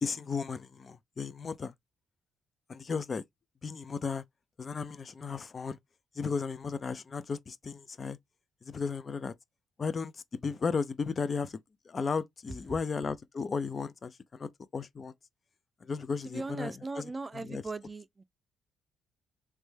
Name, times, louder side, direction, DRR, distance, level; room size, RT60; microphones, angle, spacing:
voice 1, 0.0-1.7 2.7-3.2 3.6-4.2 4.6-5.8 6.2-8.2 8.6-9.3 9.8-11.6 11.9-15.1 15.8-17.6, left 5 dB, 40° left, 0.5 m, -35 dB
voice 2, 16.2-18.2, right 3 dB, 25° right, 0.5 m, -39 dB
3.2 x 3.2 x 3.2 m
cardioid pair, 90°, 0 cm